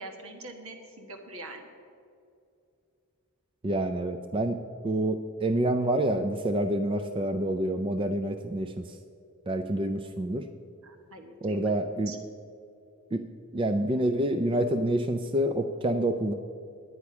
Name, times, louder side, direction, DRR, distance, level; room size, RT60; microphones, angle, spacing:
voice 1, 0.0-1.7 10.8-11.7 12.1-12.2, right 2 dB, 70° right, 4 dB, 1.6 m, -43 dB
voice 2, 3.6-4.6 4.8-8.8 9.5-10.4 11.4-12.1 13.1-13.2 13.5-16.3, right 1 dB, 25° right, 8 dB, 0.4 m, -27 dB
10.0 x 9.5 x 6.0 m, 2.5 s
head